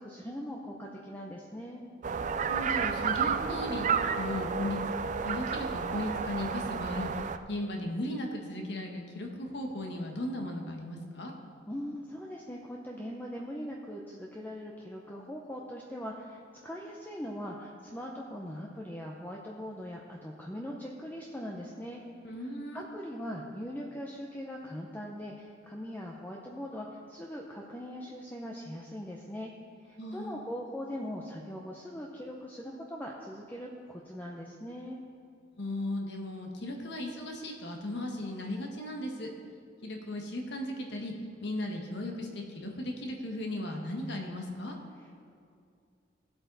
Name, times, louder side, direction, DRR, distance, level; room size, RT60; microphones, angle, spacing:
voice 1, 0.0-1.8 11.7-22.0 22.4-29.5 29.9-35.0 45.0-45.1, equal, 10° left, -2 dB, 0.7 m, -41 dB
sound 1, 2.0-7.4, right 6 dB, 40° right, 0.4 m, -31 dB
voice 2, 2.4-3.9 4.1-4.8 5.2-7.1 7.5-11.3 22.2-22.8 30.0-30.4 35.6-39.3 39.8-41.1 41.4-44.7, left 1 dB, 65° left, 2 dB, 1.5 m, -36 dB
17.0 x 7.9 x 4.1 m, 2.4 s
head